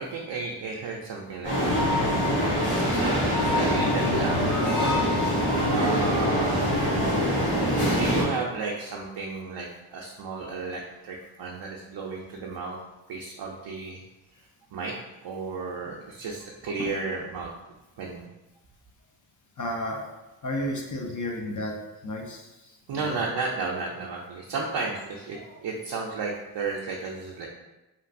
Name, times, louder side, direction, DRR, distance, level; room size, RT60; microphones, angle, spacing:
voice 1, 0.0-4.5 4.8-4.9 5.7-6.7 7.9-12.8 13.1-14.0 14.3-14.4 14.7-14.9 15.2-17.5 18.0-18.2 22.9-27.5, right 4 dB, 60° right, -1 dB, 0.5 m, -33 dB
sound 1, 1.4-8.2, equal, 85° left, 1.3 m, -24 dB
voice 2, 19.6-20.0 20.4-21.7 22.0-22.5 22.9-23.2, left 1 dB, 40° left, 0 dB, 0.6 m, -32 dB
3.0 x 2.5 x 2.5 m, 1.0 s
supercardioid pair, 45°, 48 cm